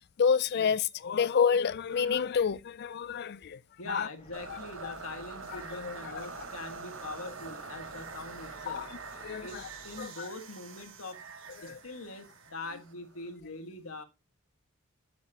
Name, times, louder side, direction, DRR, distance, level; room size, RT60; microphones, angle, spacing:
voice 1, 0.2-3.6 3.9-4.1 4.5-4.6 4.8-4.9 5.5-6.3 8.7-8.9 9.2-9.5 10.0-10.3 11.6-11.8, left 6 dB, 50° left, 0.4 m, -29 dB
voice 2, 3.8-8.8 9.4-9.6 9.8-11.2 11.6-14.0, left 2 dB, 85° left, 1.6 m, -43 dB
sound 1, 4.2-10.1, left 1 dB, 25° left, 3.0 m, -56 dB
sound 2, 4.3-13.3, right 5 dB, 65° right, 1.3 m, -45 dB
8.4 x 7.7 x 2.8 m
head